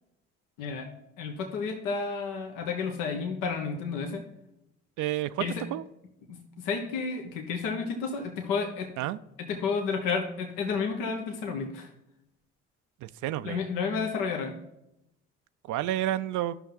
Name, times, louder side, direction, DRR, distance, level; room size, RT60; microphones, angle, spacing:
voice 1, 1.2-4.2 5.4-5.6 6.3-8.9 9.4-11.9 13.4-14.5, left 5 dB, 75° left, 2 dB, 1.2 m, -31 dB
voice 2, 5.0-5.4 5.7-5.8 9.0-9.2 13.0-13.6 15.7-16.6, right 13 dB, 65° right, 13 dB, 0.5 m, -30 dB
12.5 x 5.9 x 3.8 m, 0.87 s
hypercardioid pair, 55°, 33 cm